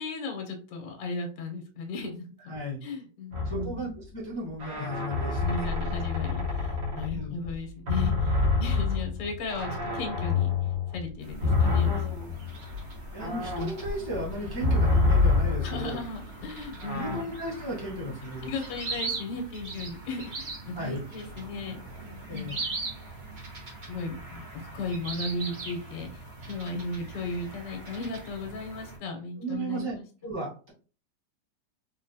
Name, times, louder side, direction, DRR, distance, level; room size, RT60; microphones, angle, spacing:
voice 1, 0.0-2.5 2.8-3.9 5.4-10.5 10.9-12.3 15.6-17.2 18.2-22.5 23.9-26.2 26.5-30.0, left 3 dB, 75° left, 2 dB, 1.4 m, -36 dB
voice 2, 2.5-2.8 3.4-5.7 7.1-7.4 13.1-16.0 16.9-18.5 20.7-21.0 22.3-22.6 29.4-30.0 30.2-30.7, right 1 dB, 30° left, -7 dB, 0.4 m, -35 dB
sound 1, 3.3-3.9 4.6-7.5 7.9-16.0 16.8-17.2, left 4 dB, 65° right, 1.5 m, -27 dB
sound 2, 11.2-29.0, right 3 dB, 45° right, 0.6 m, -41 dB
3.6 x 2.2 x 2.6 m, 0.37 s
omnidirectional pair, 2.0 m